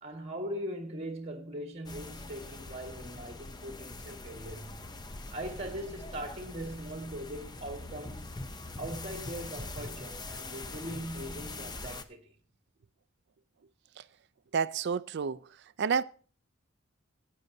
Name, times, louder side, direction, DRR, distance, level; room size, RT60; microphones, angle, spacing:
voice 1, 0.0-4.8 5.3-8.3 8.8-12.3, right 1 dB, 30° right, 1.6 m, -40 dB
sound 1, 1.9-12.0, left 2 dB, 20° left, 0.6 m, -43 dB
voice 2, 14.5-15.4 15.8-16.0, right 6 dB, 55° right, 0.4 m, -29 dB
16.0 x 8.9 x 2.7 m
head